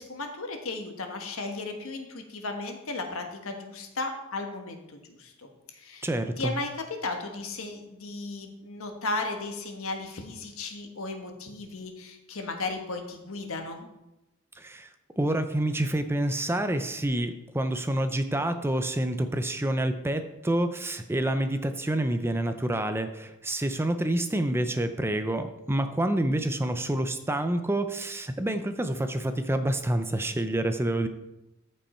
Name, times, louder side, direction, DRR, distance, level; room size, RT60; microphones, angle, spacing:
voice 1, 0.0-6.1 6.4-13.9, left 3 dB, 65° left, 4 dB, 1.4 m, -35 dB
voice 2, 6.0-6.5 14.6-14.9 15.2-31.1, right 1 dB, 10° right, 9 dB, 0.5 m, -28 dB
13.5 x 5.5 x 4.4 m, 0.94 s
head